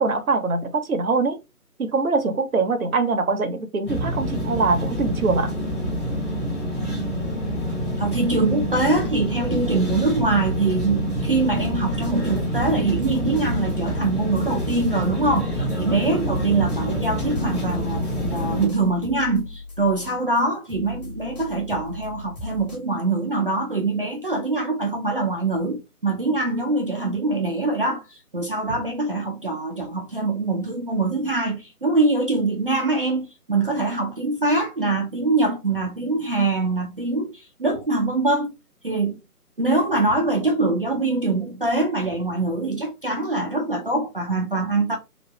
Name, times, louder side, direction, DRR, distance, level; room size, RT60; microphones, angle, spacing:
voice 1, 0.0-1.4 1.8-5.5, right 3 dB, 65° right, 0.9 m, -23 dB
sound 1, 3.9-18.7, equal, 10° left, 0.9 m, -26 dB
voice 2, 8.0-38.5 38.8-39.2 39.6-45.0, right 3 dB, 40° right, 0.5 m, -23 dB
sound 2, 11.9-20.4 20.7-22.8, left 3 dB, 30° left, 1.2 m, -39 dB
3.0 x 2.4 x 3.3 m
figure-of-eight pair, 150°, 45 cm